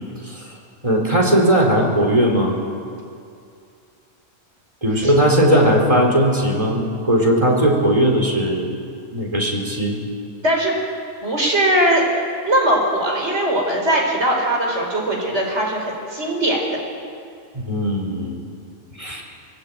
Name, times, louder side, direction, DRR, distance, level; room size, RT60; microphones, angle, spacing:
voice 1, 0.8-2.6 4.8-8.7 9.1-10.0 17.5-18.4 19.0-19.2, right 1 dB, 25° right, 0 dB, 4.5 m, -18 dB
voice 2, 10.4-10.7 11.2-12.0 12.5-16.6, right 1 dB, 55° right, 0 dB, 5.1 m, -20 dB
23.5 x 22.5 x 9.1 m, 2.4 s
omnidirectional pair, 1.4 m